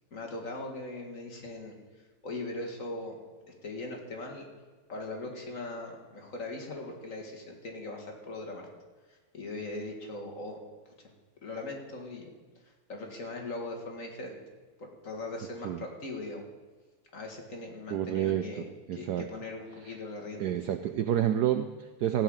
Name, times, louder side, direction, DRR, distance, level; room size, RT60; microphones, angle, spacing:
voice 1, 0.1-3.2 3.6-4.4 4.9-8.6 9.1-10.6 11.0-11.1 11.4-12.3 12.7-14.4 14.8-16.4 17.1-20.5, left 2 dB, 40° left, 1 dB, 2.2 m, -40 dB
voice 2, 17.9-19.2 19.9-20.0 20.4-22.2, right 11 dB, 85° right, 9 dB, 0.8 m, -29 dB
15.5 x 5.8 x 8.8 m, 1.3 s
omnidirectional pair, 2.4 m